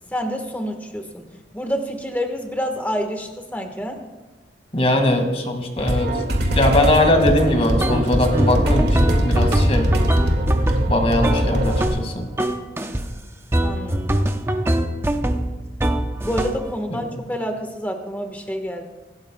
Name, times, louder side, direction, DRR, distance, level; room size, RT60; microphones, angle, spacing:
voice 1, 0.1-1.3 1.5-4.0 13.6-14.3 16.2-18.8, equal, 10° left, 4 dB, 1.4 m, -28 dB
voice 2, 4.7-6.1 6.5-9.9 10.9-12.3 16.9-17.0, left 1 dB, 35° left, 3 dB, 2.0 m, -20 dB
sound 1, 5.8-11.9, equal, 60° right, 2.1 m, -21 dB
sound 2, 7.8-8.1 8.4-12.1 12.4-13.1 13.5-16.7, right 1 dB, 15° right, 0.6 m, -23 dB
25.5 x 12.5 x 2.3 m, 1.2 s
head